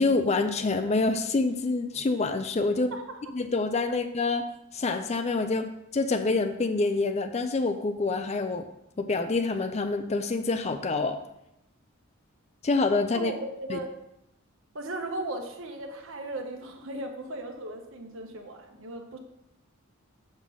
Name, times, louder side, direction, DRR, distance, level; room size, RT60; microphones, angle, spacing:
voice 1, 0.0-2.9 3.3-4.4 4.7-8.6 9.0-11.2 12.6-13.3 13.7-13.8, left 3 dB, 30° left, 8 dB, 0.4 m, -26 dB
voice 2, 13.1-13.9 14.7-19.2, right 1 dB, 60° right, 3 dB, 1.1 m, -37 dB
7.4 x 3.8 x 6.1 m, 0.84 s
head